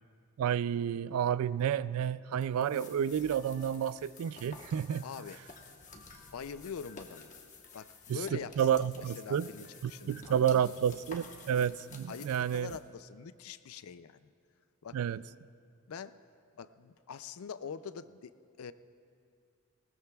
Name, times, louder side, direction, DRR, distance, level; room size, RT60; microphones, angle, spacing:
voice 1, 0.4-5.0 8.1-8.2 8.6-9.5 9.8-12.8 14.9-15.2, right 8 dB, 75° right, 0.3 m, -30 dB
sound 1, 2.4-12.8, left 4 dB, 35° left, 1.1 m, -52 dB
voice 2, 5.0-5.4 6.3-7.3 7.7-8.7 9.2-10.7 12.1-14.3 14.8-15.0 15.9-16.2 16.6-18.7, left 6 dB, 75° left, 0.4 m, -44 dB
20.0 x 19.0 x 2.3 m
head